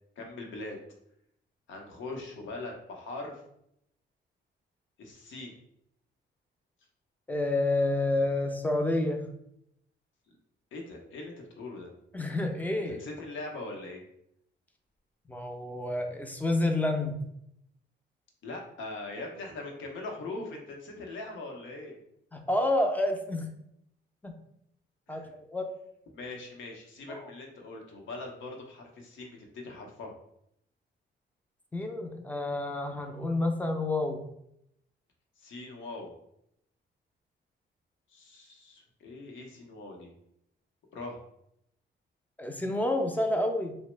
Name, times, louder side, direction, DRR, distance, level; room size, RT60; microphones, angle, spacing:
voice 1, 0.2-0.8 1.7-3.4 5.0-5.6 10.7-11.9 12.9-14.0 18.4-22.0 25.1-25.3 26.1-30.1 35.4-36.1 38.1-40.1 40.9-41.2, left 2 dB, 85° left, 1 dB, 0.7 m, -41 dB
voice 2, 7.3-9.3 12.1-13.0 15.3-17.2 22.3-23.5 24.2-24.3 25.1-25.7 27.1-27.3 31.7-34.3 42.4-43.7, left 2 dB, 10° left, 4 dB, 0.4 m, -29 dB
2.9 x 2.0 x 3.2 m, 0.75 s
cardioid pair, 110°, 19 cm